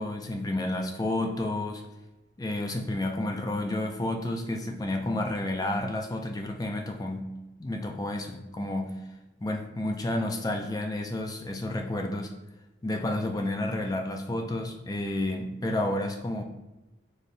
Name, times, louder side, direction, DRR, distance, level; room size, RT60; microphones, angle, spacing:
voice 1, 0.0-1.8 2.4-7.3 7.6-9.0 9.4-12.3 12.8-16.4, left 1 dB, 20° left, 3 dB, 0.3 m, -30 dB
4.1 x 3.4 x 2.5 m, 1.0 s
head